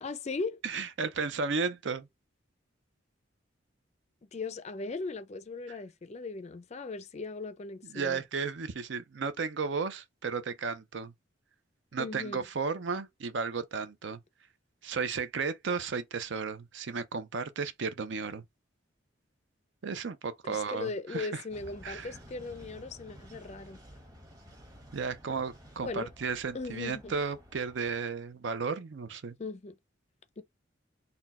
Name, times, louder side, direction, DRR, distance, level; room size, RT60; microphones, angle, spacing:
voice 1, 0.0-0.6 4.3-8.2 12.0-12.5 20.4-23.8 25.8-26.1 26.5-27.1 29.4-29.8 30.4-30.5, left 3 dB, 35° left, 0.4 m, -38 dB
voice 2, 0.6-2.1 7.9-11.1 11.9-14.2 14.8-18.4 19.8-21.4 21.8-22.1 24.9-29.4, right 5 dB, 70° right, 0.6 m, -34 dB
sound 1, 21.5-28.0, equal, 20° right, 1.0 m, -52 dB
4.2 x 2.2 x 4.1 m
head